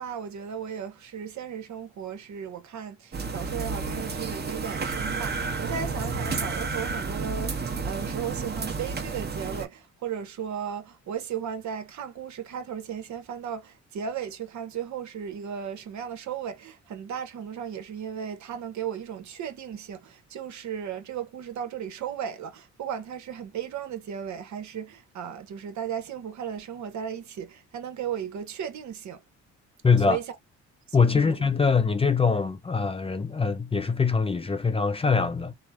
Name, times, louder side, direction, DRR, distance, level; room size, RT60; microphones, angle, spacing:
voice 1, 0.0-29.2 30.1-30.2 31.0-31.4, right 8 dB, 70° right, 1.1 m, -35 dB
sound 1, 3.1-9.6, right 4 dB, 35° right, 1.1 m, -31 dB
voice 2, 29.8-30.2 30.9-35.5, left 5 dB, 20° left, 0.4 m, -23 dB
3.1 x 2.1 x 2.4 m
cardioid pair, 90°, 30 cm